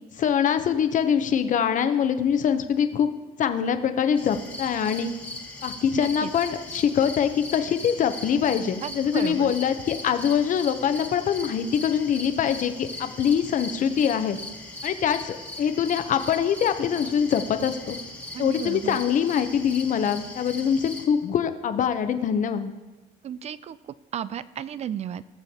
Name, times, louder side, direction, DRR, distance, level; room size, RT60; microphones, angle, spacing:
voice 1, 0.2-3.1 3.4-5.1 5.6-14.4 14.8-18.0 18.4-22.7, left 8 dB, 50° left, 9 dB, 0.8 m, -24 dB
sound 1, 4.2-21.0, left 2 dB, 10° left, 1.5 m, -39 dB
voice 2, 6.0-6.3 8.8-9.5 18.3-19.0 23.2-23.8 24.1-25.2, right 9 dB, 40° right, 17 dB, 0.4 m, -33 dB
17.5 x 7.0 x 2.8 m, 1.2 s
cardioid pair, 110°, 17 cm